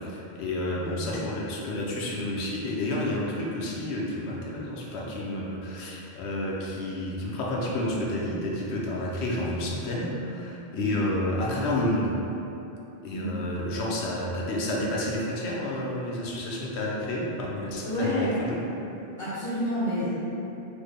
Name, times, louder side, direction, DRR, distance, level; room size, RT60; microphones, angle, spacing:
voice 1, 0.0-12.1 13.0-18.6, left 1 dB, 85° left, -3 dB, 0.9 m, -30 dB
voice 2, 0.7-1.1 10.7-10.9 13.1-13.3 17.8-18.3 19.2-20.2, left 1 dB, 60° left, -17 dB, 1.4 m, -29 dB
3.2 x 2.1 x 3.5 m, 3.0 s
omnidirectional pair, 1.1 m